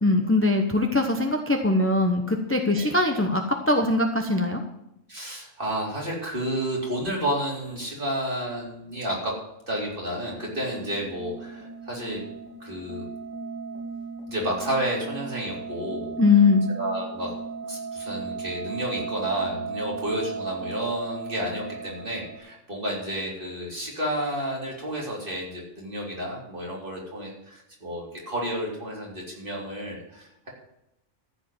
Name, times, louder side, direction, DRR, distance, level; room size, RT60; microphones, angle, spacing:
voice 1, 0.0-4.6 16.2-16.7, left 3 dB, 10° left, 3 dB, 0.9 m, -21 dB
voice 2, 5.1-9.4 9.7-12.2 12.6-13.1 14.3-16.1 16.8-17.3 17.7-30.5, right 1 dB, 40° right, -3 dB, 4.0 m, -31 dB
sound 1, 10.4-22.4, right 4 dB, 15° right, 4.4 m, -36 dB
14.0 x 5.2 x 9.3 m, 0.83 s
omnidirectional pair, 1.4 m